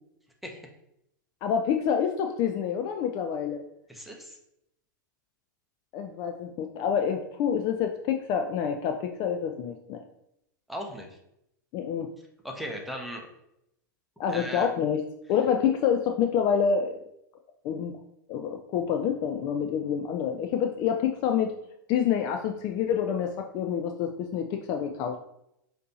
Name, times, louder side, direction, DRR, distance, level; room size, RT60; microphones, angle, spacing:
voice 1, 1.4-3.6 5.9-10.0 11.7-12.1 14.2-15.0 15.3-16.9 17.6-18.0 18.3-21.6 21.9-25.2, left 7 dB, 40° left, 5 dB, 0.4 m, -27 dB
voice 2, 3.9-4.4 10.7-11.2 12.4-13.3 14.3-14.7, equal, ahead, 1 dB, 0.8 m, -37 dB
5.0 x 2.8 x 2.8 m, 0.79 s
figure-of-eight pair, 100°, 11 cm